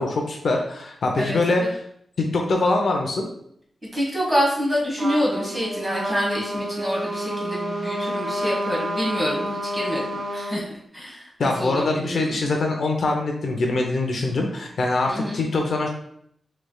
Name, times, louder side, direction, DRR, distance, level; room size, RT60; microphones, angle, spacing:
voice 1, 0.0-1.8 2.2-3.3 11.4-15.9, left 2 dB, 60° left, 2 dB, 0.6 m, -23 dB
voice 2, 1.2-1.7 3.9-10.0 10.3-12.4 15.1-15.4, equal, 10° right, -5 dB, 1.6 m, -27 dB
Trumpet, 5.0-10.6, right 1 dB, 50° right, 1.5 m, -29 dB
6.3 x 3.3 x 2.3 m, 0.70 s
wide cardioid pair, 165°, 0 cm